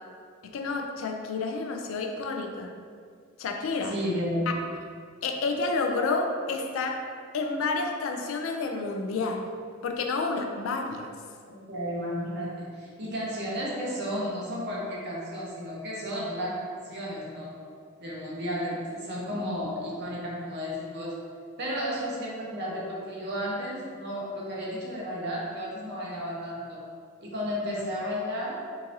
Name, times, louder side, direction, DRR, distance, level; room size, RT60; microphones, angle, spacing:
voice 1, 0.4-2.7 3.4-4.0 4.5-4.6 5.2-7.0 7.3-9.5 9.8-11.1, left 3 dB, 70° left, 4 dB, 0.3 m, -30 dB
voice 2, 3.9-4.5 11.5-17.6 18.0-21.2 21.6-26.9 27.2-28.6, equal, 55° right, -5 dB, 0.8 m, -33 dB
3.8 x 2.6 x 2.7 m, 2.1 s
head